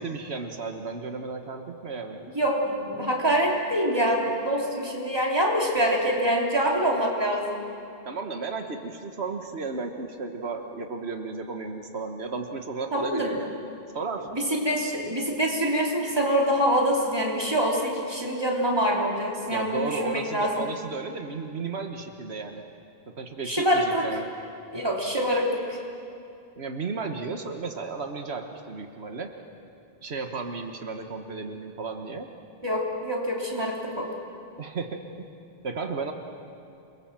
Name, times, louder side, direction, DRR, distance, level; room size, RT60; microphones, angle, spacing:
voice 1, 0.0-2.2 8.0-13.6 13.9-14.3 19.5-22.6 23.1-24.3 26.6-29.3 30.0-32.3 34.6-35.3 35.6-36.1, right 4 dB, 90° right, 5 dB, 1.6 m, -34 dB
voice 2, 2.3-7.6 12.9-13.3 14.3-20.6 23.4-24.1 24.7-25.8 32.6-34.1, equal, 25° right, -2 dB, 3.5 m, -25 dB
28.5 x 22.0 x 7.5 m, 2.5 s
omnidirectional pair, 1.0 m